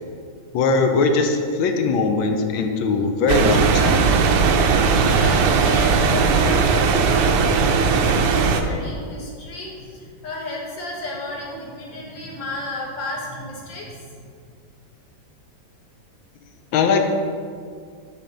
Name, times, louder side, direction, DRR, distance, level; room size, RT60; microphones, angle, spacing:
voice 1, 0.5-4.1 16.7-17.1, left 4 dB, 85° left, 4 dB, 1.4 m, -20 dB
sound 1, 3.3-8.6, right 5 dB, 70° right, 1.1 m, -18 dB
voice 2, 5.1-14.2, left 2 dB, 70° left, -4 dB, 2.2 m, -33 dB
10.0 x 3.5 x 5.3 m, 2.2 s
omnidirectional pair, 2.1 m